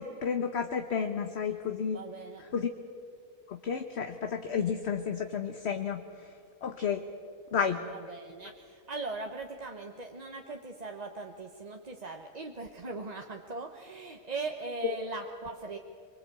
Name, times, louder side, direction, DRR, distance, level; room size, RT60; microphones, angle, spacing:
voice 1, 0.0-2.0 2.5-2.7 3.5-6.3 6.6-7.0 7.5-7.8 14.8-14.9, left 6 dB, 50° left, 6 dB, 1.2 m, -31 dB
voice 2, 1.9-2.5 7.7-15.8, right 3 dB, 30° right, 3 dB, 1.1 m, -40 dB
24.0 x 23.5 x 8.3 m, 2.3 s
omnidirectional pair, 1.5 m